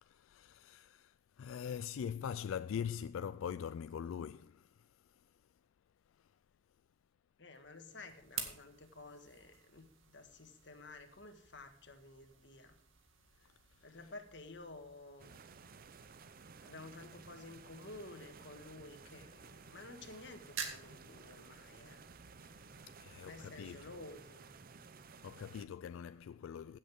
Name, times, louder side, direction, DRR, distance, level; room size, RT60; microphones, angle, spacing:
voice 1, 0.0-5.2 6.2-6.3 13.8-14.0 22.5-23.9 25.0-26.8, left 8 dB, 90° left, 0.3 m, -43 dB
voice 2, 7.4-12.7 13.4-13.5 13.8-15.4 16.3-22.0 23.1-24.5, left 2 dB, 60° left, 1.7 m, -53 dB
sound 1, 7.5-24.4, right 6 dB, 85° right, 2.0 m, -52 dB
sound 2, 15.2-25.7, right 5 dB, 45° right, 0.6 m, -56 dB
16.0 x 7.6 x 3.5 m
head